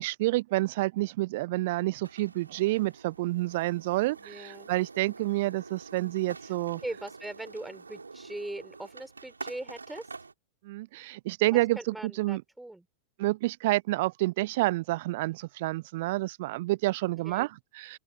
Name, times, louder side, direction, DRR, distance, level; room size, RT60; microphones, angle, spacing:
voice 1, 0.0-6.8 10.6-12.4 13.2-18.0, right 19 dB, 50° right, 0.6 m, -29 dB
sound 1, 2.0-10.3, right 4 dB, 80° right, 4.1 m, -46 dB
voice 2, 4.2-4.7 6.4-6.5 6.8-10.1 11.5-12.9 17.2-17.5, right 1 dB, 5° right, 4.3 m, -40 dB
open air
figure-of-eight pair, 90°, 0 cm